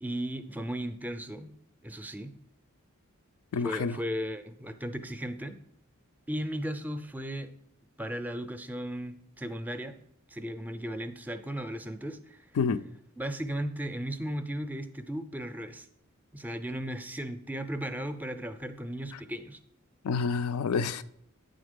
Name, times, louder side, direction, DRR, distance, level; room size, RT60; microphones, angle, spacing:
voice 1, 0.0-1.5 1.8-2.3 3.6-5.6 6.3-7.5 8.0-10.0 10.3-12.4 13.2-15.9 16.3-19.6, equal, 10° right, 0.4 m, -36 dB
voice 2, 3.5-4.0 12.6-12.8 19.1-19.2 20.0-21.0, left 5 dB, 90° left, 0.4 m, -28 dB
8.6 x 3.9 x 5.2 m
head